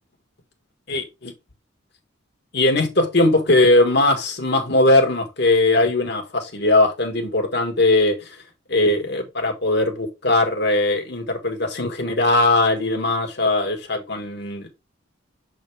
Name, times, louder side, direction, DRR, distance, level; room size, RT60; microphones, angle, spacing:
voice 1, 0.9-1.3 2.5-8.4 8.7-14.7, left 2 dB, 55° left, 1.7 m, -19 dB
7.4 x 4.1 x 3.3 m
head